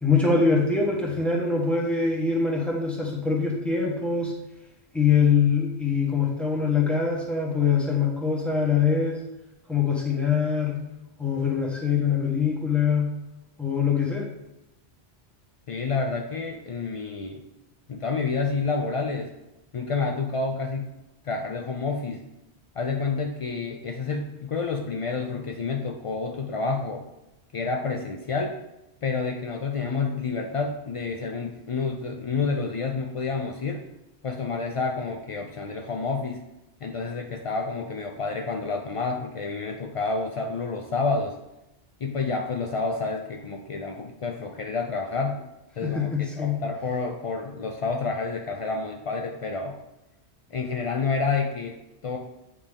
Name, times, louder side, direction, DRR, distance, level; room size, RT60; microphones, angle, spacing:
voice 1, 0.0-4.3 4.9-9.2 9.7-10.8 11.2-13.1 13.6-14.3 45.8-46.6, left 5 dB, ahead, -3 dB, 1.2 m, -23 dB
voice 2, 15.7-17.4 17.9-19.3 19.7-20.9 21.2-22.3 22.8-27.1 27.5-28.6 29.0-33.9 34.2-36.4 36.8-41.4 42.0-45.5 45.8-49.8 50.5-52.2, left 4 dB, 60° left, 3 dB, 0.3 m, -29 dB
8.7 x 3.4 x 3.5 m, 0.94 s
omnidirectional pair, 1.1 m